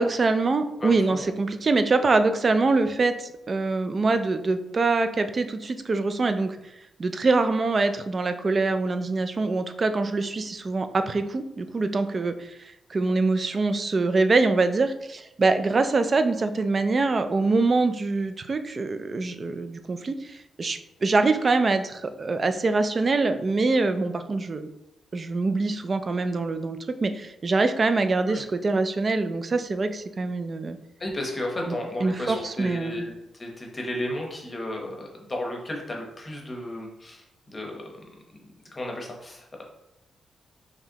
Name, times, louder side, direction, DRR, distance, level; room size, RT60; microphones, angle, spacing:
voice 1, 0.0-6.6 7.0-12.4 12.9-24.7 25.1-30.8 31.7-31.8 32.0-33.0, right 3 dB, 30° right, 9 dB, 0.3 m, -24 dB
voice 2, 0.8-1.3 28.3-28.4 31.0-37.2 37.5-38.0 38.7-39.6, left 1 dB, 20° left, 0 dB, 0.9 m, -33 dB
4.7 x 3.3 x 2.8 m, 0.89 s
wide cardioid pair, 145°, 0 cm